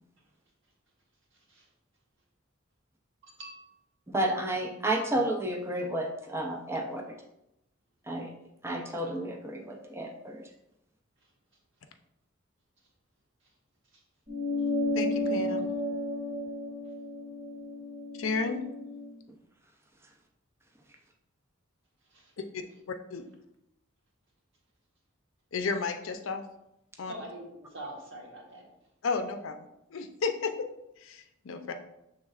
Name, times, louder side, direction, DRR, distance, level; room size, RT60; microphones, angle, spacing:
voice 1, 3.2-3.7 22.1-22.3 27.1-28.7, right 1 dB, 65° right, -1 dB, 1.1 m, -44 dB
voice 2, 4.1-7.0 8.1-8.3 8.6-10.4, right 1 dB, 10° right, 1 dB, 0.4 m, -31 dB
sound 1, 14.3-19.1, left 1 dB, 40° right, 1.4 m, -32 dB
voice 3, 14.9-15.7 18.2-18.7 22.5-23.3 25.5-26.4 27.0-27.1 29.0-30.7 31.0-31.7, left 4 dB, 70° left, 6 dB, 0.5 m, -33 dB
6.4 x 3.4 x 2.4 m, 0.84 s
head